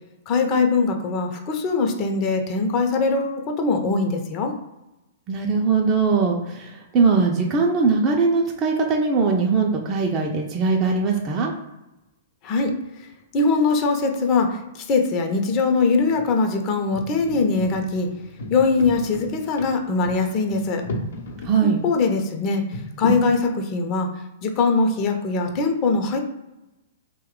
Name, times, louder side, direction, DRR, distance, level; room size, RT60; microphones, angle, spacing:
voice 1, 0.3-4.5 12.4-12.7 13.3-18.1 18.5-20.8 21.8-26.2, left 4 dB, 35° left, 4 dB, 0.6 m, -22 dB
voice 2, 5.3-11.5 21.4-21.8, right 4 dB, 30° right, 0 dB, 0.5 m, -20 dB
sound 1, 16.0-16.4 16.9-21.5 21.9-22.0 22.7-23.3, left 1 dB, 70° left, 0.8 m, -32 dB
2.9 x 2.2 x 3.6 m, 0.96 s
hypercardioid pair, 115°, 0 cm